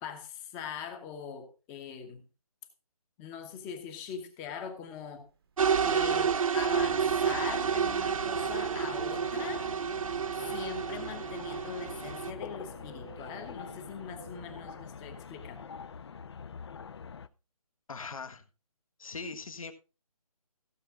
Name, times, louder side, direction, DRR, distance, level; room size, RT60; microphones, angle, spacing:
voice 1, 0.0-2.2 3.2-5.3 5.6-9.7 10.5-15.7, left 7 dB, 10° left, 7 dB, 1.0 m, -42 dB
sound 1, 5.6-14.9, right 7 dB, 40° right, 1.1 m, -49 dB
sound 2, 5.6-12.3, right 7 dB, 60° right, 0.6 m, -30 dB
sound 3, 6.7-17.3, left 6 dB, 45° left, 0.6 m, -45 dB
voice 2, 17.9-18.4 19.0-19.7, left 4 dB, 65° left, 7 dB, 1.6 m, -40 dB
16.0 x 7.0 x 3.6 m, 0.31 s
figure-of-eight pair, 160°, 19 cm